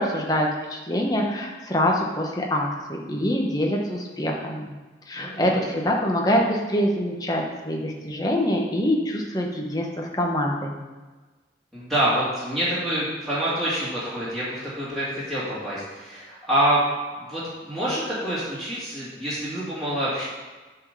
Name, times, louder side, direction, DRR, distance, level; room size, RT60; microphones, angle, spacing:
voice 1, 0.0-4.7 5.1-10.7, equal, 20° left, 0 dB, 1.0 m, -25 dB
voice 2, 5.2-5.6 11.7-16.8 17.2-20.2, right 1 dB, ahead, -11 dB, 2.2 m, -26 dB
7.8 x 4.0 x 6.7 m, 1.3 s
head